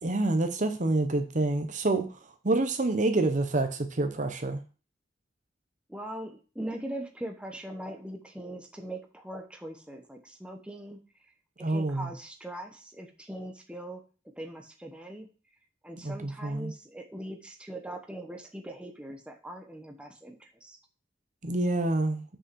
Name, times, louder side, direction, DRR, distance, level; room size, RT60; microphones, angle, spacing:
voice 1, 0.0-2.2 2.4-4.6 11.6-12.1 16.0-16.7 21.4-22.2, right 2 dB, 45° right, 8 dB, 0.9 m, -27 dB
voice 2, 5.9-11.0 11.6-14.0 14.4-15.3 15.8-20.8, right 1 dB, 5° right, 3 dB, 1.0 m, -41 dB
6.3 x 5.4 x 6.2 m, 0.36 s
head